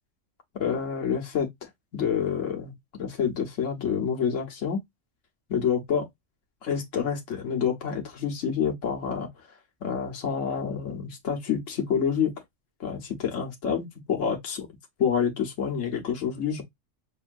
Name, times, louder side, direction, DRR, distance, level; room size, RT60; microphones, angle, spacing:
voice 1, 0.5-2.7 3.0-4.8 5.5-6.1 6.6-9.3 9.8-12.3 12.8-14.7 15.0-16.6, left 7 dB, 75° left, 1.6 m, -28 dB
6.3 x 2.8 x 2.5 m
omnidirectional pair, 1.3 m